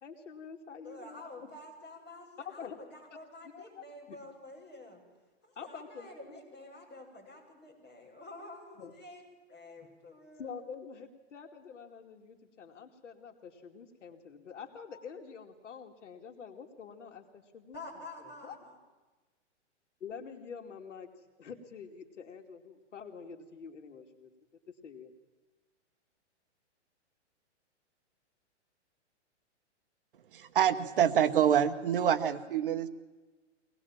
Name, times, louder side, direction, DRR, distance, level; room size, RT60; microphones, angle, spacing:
voice 1, 0.0-1.5 2.4-2.8 3.1-3.2 3.4-4.2 5.5-6.4 8.8-8.9 10.4-18.0 18.4-18.6 20.0-21.1 21.4-24.3 24.8-25.1, left 6 dB, 80° left, 4 dB, 2.7 m, -47 dB
voice 2, 0.8-5.0 5.4-9.2 9.5-10.5 17.7-18.7, left 2 dB, 30° left, -3 dB, 7.6 m, -49 dB
voice 3, 30.3-32.9, right 9 dB, 50° right, 9 dB, 1.0 m, -26 dB
24.0 x 19.0 x 7.3 m, 1.2 s
hypercardioid pair, 175°, 36 cm